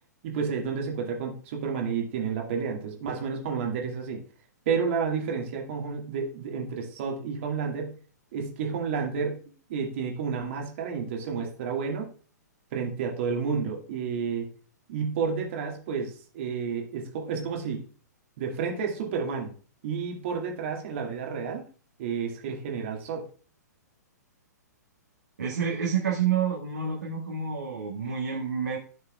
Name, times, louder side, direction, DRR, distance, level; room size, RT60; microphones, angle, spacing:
voice 1, 0.2-4.2 4.7-7.9 8.3-9.4 9.7-12.1 12.7-14.5 14.9-17.8 18.4-19.5 19.8-21.6 22.0-23.3, right 6 dB, 45° right, 1 dB, 2.1 m, -30 dB
voice 2, 25.4-28.8, right 7 dB, 65° right, -3 dB, 1.9 m, -28 dB
14.5 x 5.5 x 2.4 m, 0.40 s
figure-of-eight pair, 115°, 10 cm